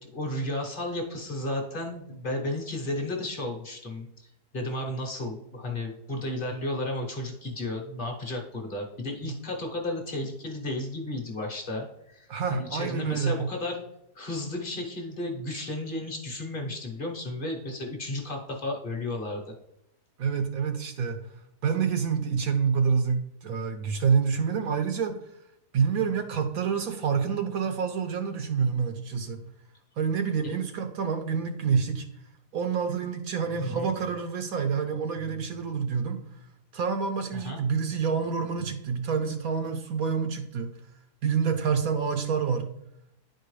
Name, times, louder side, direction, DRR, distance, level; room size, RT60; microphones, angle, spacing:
voice 1, 0.0-13.8 14.1-19.5 30.4-30.5 33.6-33.9 37.3-37.6, left 1 dB, 35° left, 1 dB, 1.1 m, -33 dB
voice 2, 12.3-13.4 20.2-21.2 21.6-25.1 25.7-29.4 30.0-32.1 32.5-36.2 36.7-40.7 41.2-42.7, right 6 dB, 70° right, 7 dB, 0.9 m, -27 dB
10.0 x 4.5 x 3.2 m, 0.82 s
omnidirectional pair, 1.8 m